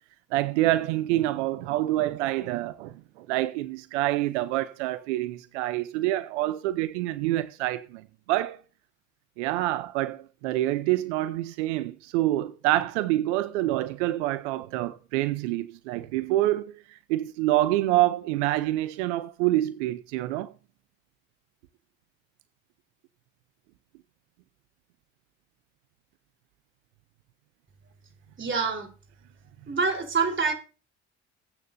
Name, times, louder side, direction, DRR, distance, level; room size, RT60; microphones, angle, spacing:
voice 1, 0.3-8.6 9.4-20.5, right 15 dB, 90° right, 0.6 m, -27 dB
voice 2, 28.4-28.9 29.7-30.5, right 4 dB, 35° right, 3.7 m, -26 dB
21.5 x 8.8 x 2.6 m
hypercardioid pair, 55°, 34 cm